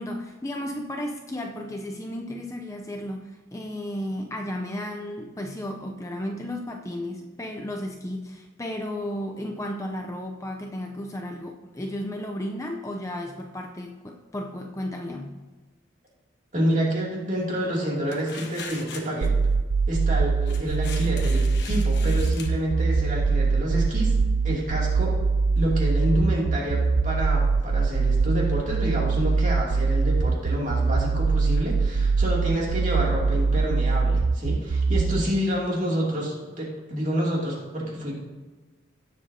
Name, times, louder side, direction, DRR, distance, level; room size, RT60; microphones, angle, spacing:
voice 1, 0.0-15.4, left 1 dB, 15° left, 2 dB, 0.5 m, -34 dB
voice 2, 16.5-19.3 19.9-24.1 24.4-25.1 25.6-38.1, equal, 40° right, -3 dB, 2.6 m, -28 dB
sound 1, 18.1-19.3 20.5-22.5, left 5 dB, 55° left, 1.1 m, -41 dB
sound 2, 19.2-35.2, right 4 dB, 75° right, 0.4 m, -22 dB
17.0 x 7.5 x 2.8 m, 1.3 s
head